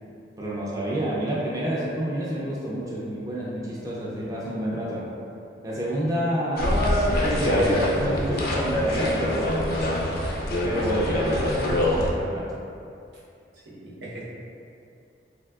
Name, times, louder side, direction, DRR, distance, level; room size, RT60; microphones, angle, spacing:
voice 1, 0.4-5.0 5.6-9.6 10.6-12.5, right 1 dB, 20° right, -6 dB, 0.4 m, -29 dB
sound 1, 6.6-12.1, left 1 dB, 60° left, 0.4 m, -24 dB
voice 2, 13.5-14.2, right 2 dB, 80° right, -7 dB, 0.7 m, -41 dB
3.4 x 2.6 x 2.3 m, 2.6 s
head